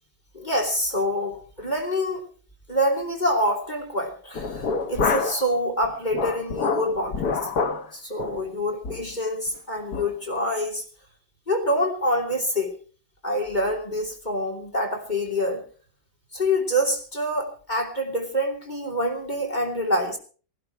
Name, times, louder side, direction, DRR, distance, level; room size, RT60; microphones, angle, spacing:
voice 1, 0.3-2.3 2.7-7.5 7.9-10.9 11.5-12.8 13.2-15.6 16.3-20.2, equal, 25° left, 1 dB, 3.1 m, -26 dB
sound 1, 4.4-5.5 5.8-7.9 8.2-8.4 8.8-9.1 9.5-9.6 9.9-10.1, left 4 dB, 65° left, 1.7 m, -27 dB
18.0 x 12.5 x 4.6 m, 0.39 s
omnidirectional pair, 1.8 m